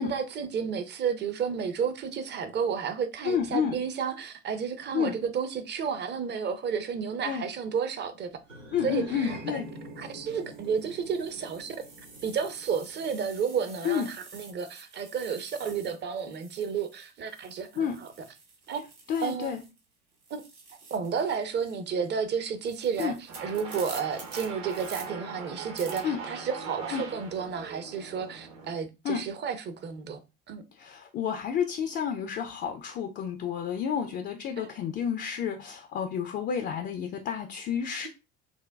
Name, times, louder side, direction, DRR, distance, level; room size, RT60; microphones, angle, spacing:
voice 1, 0.0-8.3 8.8-9.3 10.0-11.8 12.2-18.1 18.7-18.8 19.2-19.5 20.3-20.4 20.9-30.2 30.5-30.6 34.6-34.7, right 6 dB, 30° right, 0.6 m, -32 dB
voice 2, 3.2-3.8 4.9-5.1 7.2-7.5 8.7-9.7 13.8-14.1 17.8-18.0 19.1-19.6 23.0-23.2 26.0-26.2 26.9-27.0 29.0-29.2 30.8-38.1, left 7 dB, 30° left, 0.4 m, -30 dB
sound 1, 8.5-13.0, right 1 dB, 85° right, 2.2 m, -45 dB
sound 2, 8.7-8.9 9.7-19.8 20.1-25.0 25.8-26.0, right 4 dB, 70° right, 1.3 m, -49 dB
sound 3, 23.3-28.7, right 5 dB, 55° right, 1.0 m, -41 dB
6.0 x 2.2 x 2.2 m
figure-of-eight pair, 65°, 37 cm